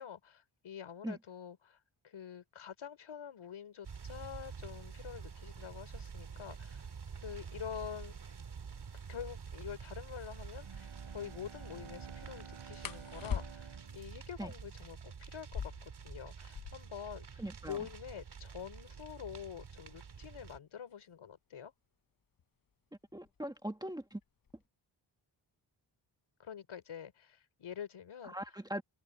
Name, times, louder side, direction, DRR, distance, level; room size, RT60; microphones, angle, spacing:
voice 1, 0.0-1.8 2.0-6.9 7.2-8.3 9.1-21.7 26.4-28.4, left 8 dB, 75° left, 4.1 m, -46 dB
sound 1, 3.8-20.6, right 6 dB, 55° right, 3.0 m, -48 dB
sound 2, 10.1-10.3 12.8-13.9 15.4-17.0 17.3-17.4 17.6-18.2 18.8-21.4 22.4-22.7 23.1-23.6 23.9-24.6, left 7 dB, 45° left, 0.9 m, -43 dB
Bowed string instrument, 10.5-15.3, right 7 dB, 90° right, 3.7 m, -53 dB
voice 2, 17.4-17.8 23.1-24.2 28.2-28.8, right 1 dB, 10° right, 1.4 m, -40 dB
wide cardioid pair, 130°, 48 cm